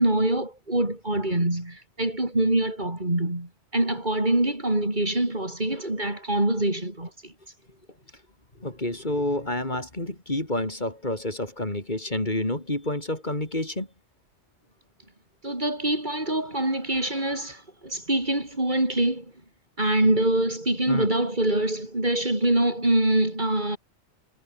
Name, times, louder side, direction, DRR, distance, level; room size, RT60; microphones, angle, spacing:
voice 1, 0.0-7.3 15.4-19.2 19.8-23.8, right 1 dB, 40° right, 5.1 m, -24 dB
voice 2, 8.6-13.9 15.4-15.6 20.9-21.1, left 1 dB, 40° left, 4.2 m, -29 dB
omnidirectional pair, 1.2 m